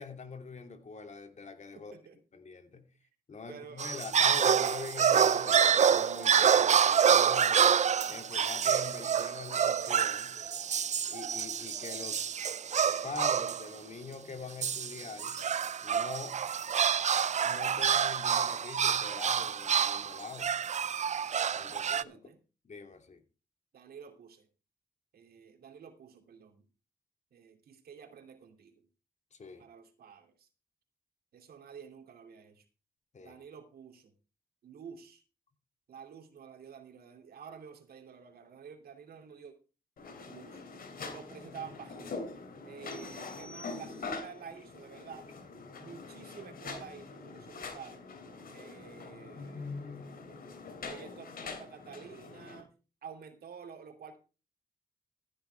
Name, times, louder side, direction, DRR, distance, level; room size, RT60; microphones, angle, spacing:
voice 1, 0.0-2.0 2.3-2.9 3.3-7.7 8.1-10.4 11.1-12.2 13.0-15.4 15.8-16.4 17.4-20.5 21.5-22.2 22.6-23.2 29.3-29.6 33.1-33.4, left 4 dB, 50° left, 6 dB, 2.8 m, -44 dB
voice 2, 1.7-2.2 3.5-3.9 21.7-22.4 23.7-24.5 25.1-26.6 27.3-28.9 29.6-30.5 31.3-32.6 33.2-34.1 34.6-35.2 35.9-39.6 40.1-40.6 41.1-42.3 42.6-45.3 45.8-48.0 48.5-49.8 50.8-52.7 53.0-54.2, right 7 dB, 80° right, 6 dB, 2.7 m, -50 dB
sound 1, 3.8-13.7 14.6-22.0, right 7 dB, 50° right, 0.5 m, -27 dB
sound 2, 40.0-52.6, left 4 dB, 70° left, 3.1 m, -44 dB
sound 3, 42.9-44.4, left 2 dB, 5° left, 1.9 m, -53 dB
15.0 x 11.0 x 3.4 m, 0.33 s
cardioid pair, 75°, 16 cm